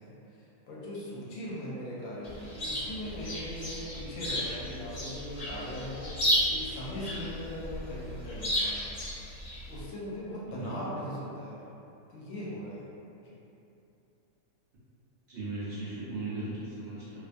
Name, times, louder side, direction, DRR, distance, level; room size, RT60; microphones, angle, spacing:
voice 1, 0.0-8.9 9.7-11.6 12.1-12.8 13.2-13.4, equal, 70° left, -7 dB, 1.0 m, -40 dB
Chirp tweet, 2.2-9.8, equal, 45° left, 0.6 m, -33 dB
voice 2, 15.3-17.2, right 2 dB, 65° right, -10 dB, 0.7 m, -37 dB
2.5 x 2.3 x 2.5 m, 2.8 s
omnidirectional pair, 1.6 m